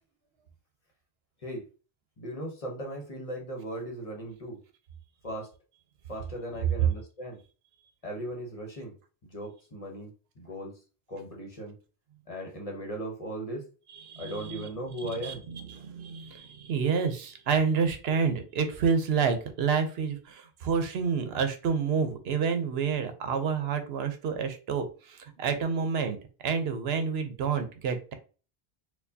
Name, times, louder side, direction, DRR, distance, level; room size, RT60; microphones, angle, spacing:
voice 1, 2.2-4.6 5.2-5.5 6.1-7.4 8.0-8.9 9.2-10.1 10.4-10.8 11.1-11.7 12.3-13.7 14.2-15.5, right 1 dB, 40° left, 1 dB, 0.9 m, -37 dB
voice 2, 13.9-14.7 15.0-26.2 26.4-28.1, right 6 dB, 80° right, 7 dB, 0.9 m, -29 dB
4.5 x 2.3 x 2.7 m, 0.36 s
omnidirectional pair, 1.0 m